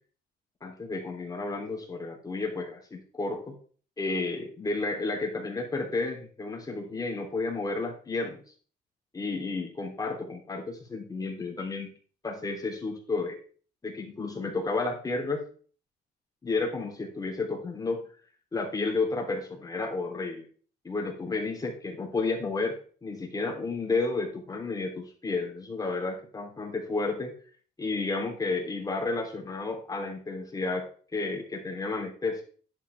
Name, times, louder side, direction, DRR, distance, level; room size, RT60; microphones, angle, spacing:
voice 1, 0.6-3.6 4.0-8.4 9.1-11.9 12.2-13.4 13.8-15.5 16.4-18.1 18.5-20.5 20.8-27.3 27.8-32.4, left 3 dB, 20° left, 0 dB, 3.4 m, -32 dB
11.0 x 7.6 x 3.6 m, 0.43 s
cardioid pair, 110°, 18 cm